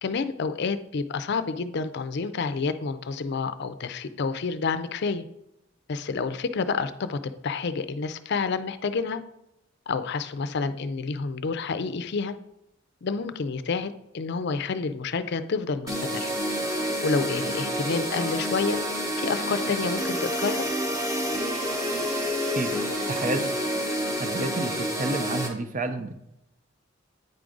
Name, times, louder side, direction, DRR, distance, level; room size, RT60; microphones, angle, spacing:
voice 1, 0.0-5.2 5.9-9.2 9.9-12.3 13.0-16.3 17.0-18.8 19.2-20.6, left 4 dB, 55° left, 11 dB, 0.5 m, -29 dB
sound 1, 15.9-25.5, equal, 15° right, 1.1 m, -28 dB
voice 2, 23.1-23.6 24.1-26.1, right 2 dB, 40° right, 8 dB, 0.6 m, -30 dB
8.9 x 4.8 x 3.8 m, 0.85 s
head